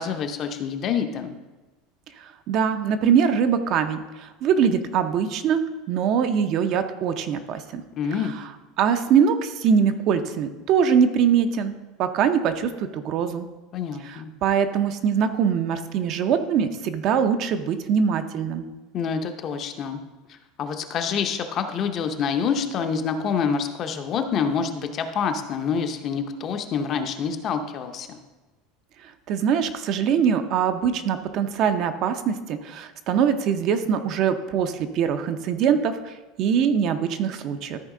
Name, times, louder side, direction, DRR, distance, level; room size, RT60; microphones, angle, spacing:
voice 1, 0.0-1.4 8.0-8.3 13.7-14.3 18.9-20.0 20.3-28.2, left 6 dB, 30° left, 6 dB, 0.6 m, -27 dB
voice 2, 2.2-5.6 5.9-7.8 8.2-8.4 8.8-11.7 12.0-13.5 14.0-18.7 29.3-37.8, right 7 dB, 40° right, 9 dB, 0.5 m, -23 dB
13.5 x 4.5 x 3.7 m, 1.2 s
cardioid pair, 170°, 0 cm